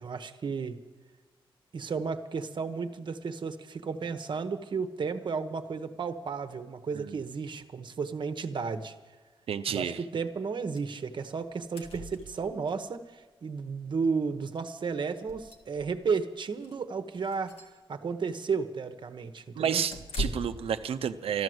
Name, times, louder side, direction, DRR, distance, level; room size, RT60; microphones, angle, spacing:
voice 1, 0.0-0.8 1.7-8.9 9.7-17.5 17.9-19.8, right 5 dB, 55° right, 9 dB, 0.9 m, -33 dB
voice 2, 9.5-10.0 19.6-21.4, right 8 dB, 90° right, 9 dB, 0.6 m, -31 dB
sound 1, 10.8-10.9 11.2-11.3 11.5-12.8 14.0-14.1 14.5-14.6 15.1-16.1 16.5-16.8 17.2-17.8 19.9-20.7, equal, 85° left, 1.8 m, -39 dB
13.0 x 12.0 x 7.8 m, 1.3 s
wide cardioid pair, 110°, 9 cm